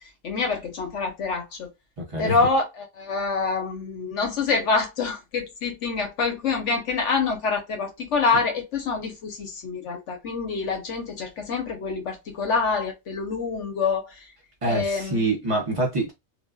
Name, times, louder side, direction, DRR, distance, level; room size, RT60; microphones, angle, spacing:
voice 1, 0.2-1.7 2.2-14.1 14.7-15.2, left 4 dB, 65° left, 1.2 m, -26 dB
voice 2, 2.1-2.4 14.6-16.1, right 2 dB, 30° right, 0.8 m, -25 dB
3.3 x 2.4 x 2.3 m
omnidirectional pair, 1.4 m